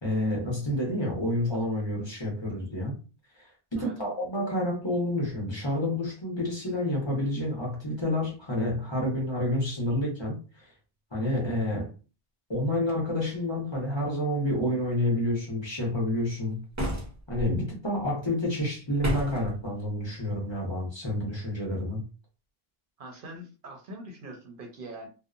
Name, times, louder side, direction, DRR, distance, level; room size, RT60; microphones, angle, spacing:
voice 1, 0.0-3.0 3.4-10.7 11.1-11.9 12.5-16.6 17.3-22.0, left 1 dB, 30° left, 0.9 m, -29 dB
sound 1, 16.7-17.5 19.0-19.5, equal, 25° right, 0.4 m, -31 dB
voice 2, 23.0-25.1, right 1 dB, 60° right, 0.7 m, -42 dB
2.7 x 2.0 x 2.4 m
omnidirectional pair, 1.1 m